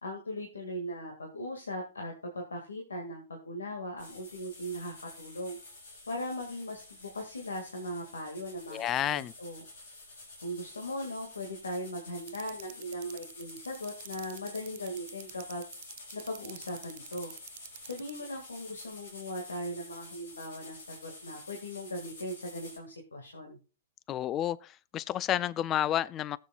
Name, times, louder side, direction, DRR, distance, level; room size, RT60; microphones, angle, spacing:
voice 1, 0.0-5.6 6.1-9.7 10.4-15.6 16.1-17.3 17.8-23.6, equal, 85° left, 2.1 m, -39 dB
sound 1, 4.0-22.8, left 2 dB, 70° left, 4.9 m, -50 dB
voice 2, 8.7-9.3 24.1-26.4, left 11 dB, 30° left, 0.5 m, -30 dB
sound 2, 12.3-18.1, right 16 dB, 55° right, 0.4 m, -46 dB
18.5 x 7.5 x 2.4 m
hypercardioid pair, 115°, 0 cm